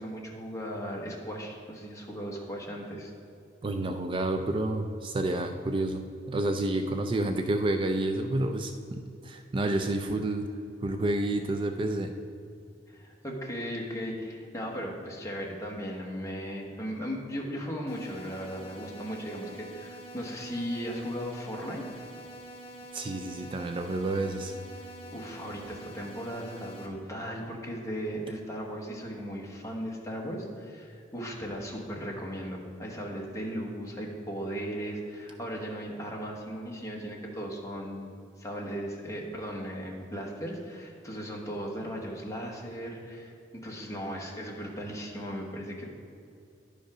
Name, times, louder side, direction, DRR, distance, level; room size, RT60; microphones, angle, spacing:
voice 1, 0.0-3.1 12.9-22.0 25.1-38.1 38.4-45.9, equal, 20° left, -2 dB, 1.3 m, -37 dB
voice 2, 3.6-10.5 10.8-12.1 22.9-24.5, right 2 dB, 30° right, 6 dB, 0.4 m, -29 dB
sound 1, 17.9-26.9, right 1 dB, 35° left, 1.9 m, -46 dB
11.0 x 5.3 x 5.0 m, 2.5 s
head